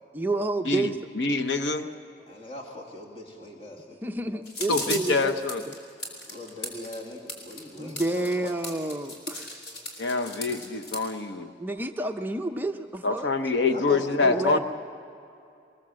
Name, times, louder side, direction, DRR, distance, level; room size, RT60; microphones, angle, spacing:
voice 1, 0.1-1.0 4.0-5.4 5.7-5.8 7.8-10.1 11.6-13.3 14.2-14.6, right 2 dB, 10° right, 5 dB, 0.6 m, -30 dB
voice 2, 0.7-1.9 4.7-5.6 10.0-11.5 13.0-14.6, left 3 dB, 80° left, 8 dB, 0.9 m, -26 dB
voice 3, 2.3-4.0 6.3-8.5 13.7-14.6, left 1 dB, 30° left, 1 dB, 2.1 m, -39 dB
sound 1, 4.4-11.0, left 1 dB, 60° left, 4.4 m, -37 dB
22.5 x 21.5 x 7.6 m, 2.6 s
head